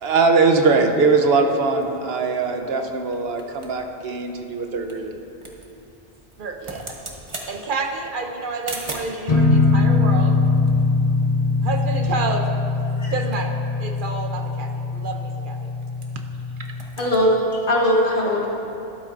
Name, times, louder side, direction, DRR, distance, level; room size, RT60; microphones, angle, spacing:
voice 1, 0.0-5.2, right 4 dB, 80° right, 4 dB, 1.0 m, -20 dB
sound 1, 1.8-9.3 10.0-11.7 11.9-12.0 12.3-12.6 13.0-16.3 16.6-17.2, right 2 dB, 30° right, 1.0 m, -41 dB
voice 2, 6.4-6.9 7.5-10.4 11.6-12.5 12.9-15.8 16.6-16.7, right 3 dB, 60° right, 4 dB, 0.8 m, -29 dB
sound 2, 9.3-16.9, left 3 dB, 40° left, 0.8 m, -21 dB
voice 3, 17.0-18.5, equal, 55° left, -3 dB, 1.6 m, -20 dB
12.5 x 12.0 x 2.5 m, 2.8 s
omnidirectional pair, 1.0 m